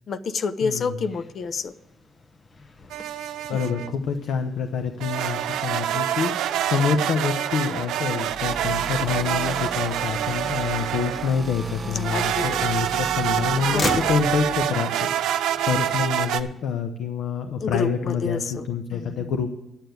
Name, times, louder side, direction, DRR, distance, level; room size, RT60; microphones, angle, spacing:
voice 1, 0.1-1.7 3.5-3.6 11.8-12.7 13.7-14.1 17.6-18.7 18.9-19.3, left 5 dB, 55° left, 12 dB, 0.6 m, -29 dB
voice 2, 0.6-1.0 3.5-19.6, left 6 dB, 80° left, 7 dB, 0.9 m, -27 dB
Motor vehicle (road), 1.0-16.8, left 2 dB, 35° left, 1.0 m, -40 dB
sound 1, 2.9-3.9 5.0-11.4 12.0-16.4, right 11 dB, 90° right, 0.6 m, -26 dB
sound 2, 8.2-14.7, right 4 dB, 40° right, 1.2 m, -36 dB
11.0 x 7.0 x 7.9 m, 0.90 s
cardioid pair, 90°, 0 cm